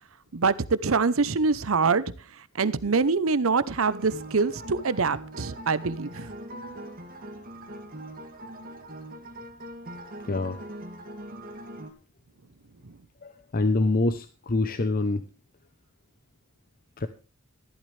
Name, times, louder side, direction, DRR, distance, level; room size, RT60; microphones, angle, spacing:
voice 1, 0.3-2.0 2.5-6.3 12.8-12.9, right 4 dB, 80° right, 0.8 m, -24 dB
sound 1, 3.7-11.9, right 1 dB, 45° right, 2.3 m, -41 dB
voice 2, 10.3-10.6 13.2-15.2 17.0-17.1, left 2 dB, 45° left, 0.7 m, -25 dB
14.0 x 12.0 x 3.3 m
head